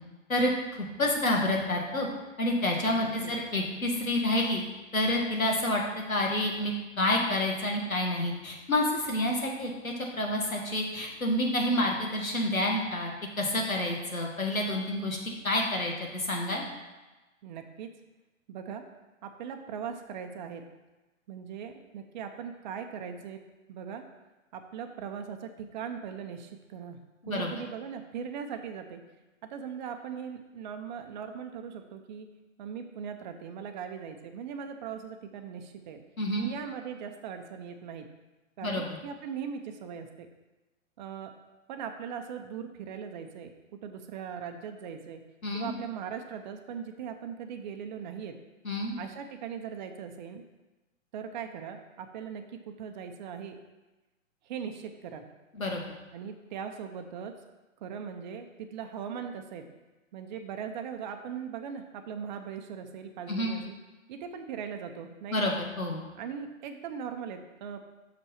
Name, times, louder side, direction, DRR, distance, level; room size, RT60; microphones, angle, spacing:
voice 1, 0.3-2.1 2.4-4.6 4.9-5.8 6.1-13.1 13.4-15.2 15.4-16.7 27.2-27.5 36.2-36.5 38.6-38.8 45.4-45.7 48.6-48.9 55.5-55.8 63.3-63.5 65.3-66.0, left 1 dB, 85° left, 0 dB, 1.9 m, -28 dB
voice 2, 3.0-3.3 17.4-17.9 18.5-18.8 19.2-20.7 21.3-23.4 23.7-24.0 24.5-27.0 27.3-29.0 29.4-32.3 32.6-36.0 36.4-38.1 38.6-40.3 41.0-41.3 41.7-45.2 45.5-48.4 49.0-50.4 51.1-53.6 54.5-55.2 56.1-57.3 57.8-59.7 60.1-63.7 64.1-65.5 66.2-67.9, right 7 dB, 35° right, 6 dB, 0.8 m, -39 dB
6.2 x 5.4 x 5.9 m, 1.1 s
figure-of-eight pair, 125°, 40 cm